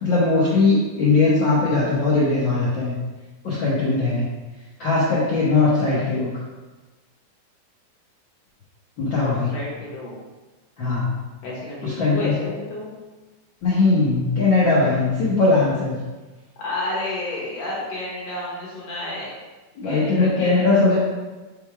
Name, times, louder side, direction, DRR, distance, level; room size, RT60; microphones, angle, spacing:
voice 1, 0.0-2.9 3.4-4.2 4.8-6.3 9.0-9.5 10.8-11.1 11.8-12.3 13.6-16.0 19.8-21.0, left 3 dB, 85° left, -8 dB, 1.0 m, -19 dB
voice 2, 9.0-10.1 11.4-12.9 16.6-19.3 19.8-21.0, left 2 dB, 60° left, -6 dB, 2.1 m, -31 dB
5.8 x 3.7 x 4.6 m, 1.2 s
omnidirectional pair, 3.8 m